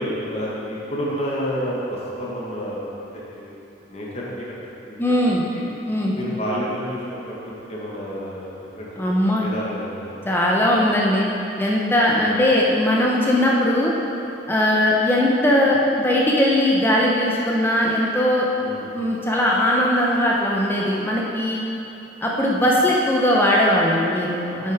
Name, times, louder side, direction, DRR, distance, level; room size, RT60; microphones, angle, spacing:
voice 1, 0.0-3.5 3.9-5.0 5.5-5.6 6.1-8.5 8.8-9.1 9.4-10.2 10.6-10.8 12.1-12.2 18.6-18.9, equal, 35° left, -5 dB, 1.2 m, -30 dB
voice 2, 5.0-5.4 5.8-6.1 9.0-9.4 10.2-11.3 11.6-13.9 14.5-18.5 18.9-21.6 22.2-24.7, left 1 dB, 10° left, -3 dB, 0.6 m, -19 dB
6.6 x 6.5 x 4.7 m, 2.9 s
head